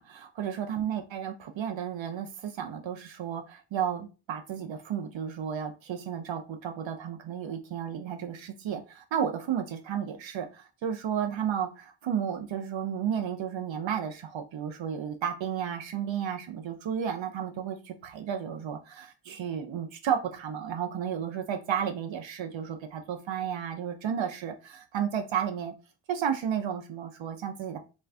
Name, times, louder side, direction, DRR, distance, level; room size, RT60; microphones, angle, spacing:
voice 1, 0.0-25.7 26.1-27.8, right 8 dB, 70° right, 5 dB, 0.6 m, -33 dB
2.5 x 2.3 x 3.2 m, 0.31 s
cardioid pair, 70°, 47 cm